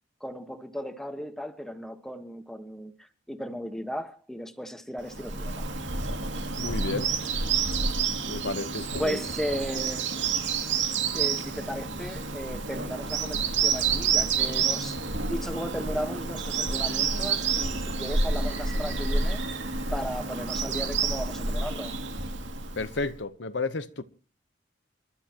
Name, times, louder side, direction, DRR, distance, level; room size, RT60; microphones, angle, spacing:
voice 1, 0.2-2.9 3.3-5.7 9.0-10.1 11.1-19.4 19.9-22.0, equal, ahead, 1.3 m, -35 dB
Bird vocalization bird call bird song, 5.1-23.1, right 5 dB, 85° right, 2.4 m, -29 dB
voice 2, 6.5-7.1 8.3-9.2 22.8-24.0, left 3 dB, 75° left, 0.9 m, -32 dB
29.5 x 12.5 x 2.9 m
head